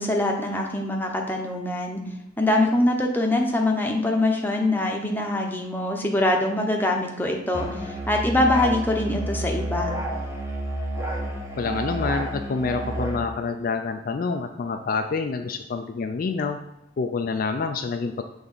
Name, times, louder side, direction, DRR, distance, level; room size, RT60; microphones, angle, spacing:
voice 1, 0.0-2.0 2.4-7.7 8.1-9.9, left 1 dB, 10° left, 1 dB, 0.9 m, -23 dB
Musical instrument, 7.5-13.2, right 1 dB, 15° right, 1.0 m, -30 dB
voice 2, 11.6-16.6 17.0-18.2, left 4 dB, 50° left, 5 dB, 0.4 m, -27 dB
6.8 x 3.5 x 5.5 m, 0.82 s
head